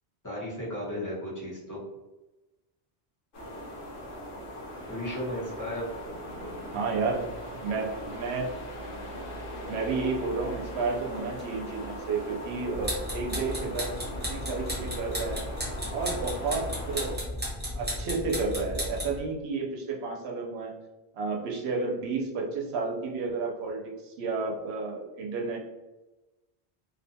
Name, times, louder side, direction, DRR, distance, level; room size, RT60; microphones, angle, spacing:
voice 1, 0.2-1.8 4.9-5.9, left 1 dB, 20° left, -7 dB, 0.7 m, -34 dB
sound 1, 3.3-17.2, equal, 60° left, 0.8 m, -40 dB
voice 2, 6.7-8.6 9.7-14.0 14.3-15.5 15.9-17.2 17.7-20.7 21.1-25.6, right 4 dB, 90° right, 0 dB, 0.8 m, -31 dB
sound 2, 12.7-19.2, equal, 10° right, 0.6 m, -34 dB
2.6 x 2.2 x 2.7 m, 1.1 s
omnidirectional pair, 1.1 m